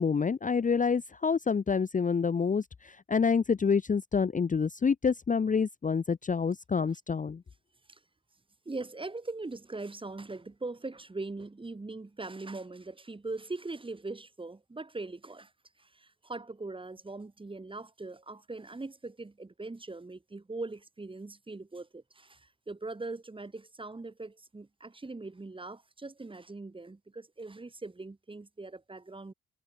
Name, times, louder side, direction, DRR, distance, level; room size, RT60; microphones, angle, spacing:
voice 1, 0.0-7.4, left 5 dB, 25° left, 0.8 m, -27 dB
voice 2, 8.7-15.5 15.8-29.3, right 3 dB, 15° right, 1.9 m, -41 dB
cardioid pair, 90°, 30 cm